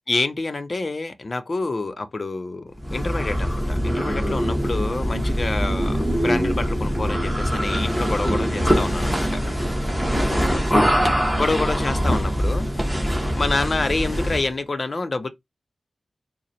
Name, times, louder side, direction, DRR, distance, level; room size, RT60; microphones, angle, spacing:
voice 1, 0.1-9.4 11.4-12.7 13.3-15.3, left 3 dB, 45° left, 0.6 m, -27 dB
sound 1, 2.8-14.5, equal, ahead, 1.0 m, -23 dB
3.8 x 2.1 x 4.2 m
wide cardioid pair, 95°, 0 cm